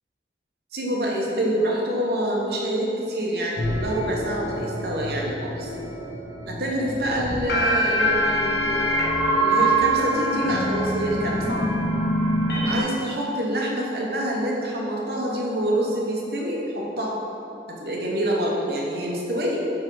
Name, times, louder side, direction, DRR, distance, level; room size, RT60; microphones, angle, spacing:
voice 1, 0.7-5.7 6.5-11.4 12.7-17.2 17.8-19.6, right 1 dB, 60° right, -2 dB, 1.0 m, -26 dB
sound 1, 3.6-12.8, right 1 dB, 70° left, 1.1 m, -24 dB
6.1 x 3.5 x 5.3 m, 2.8 s
head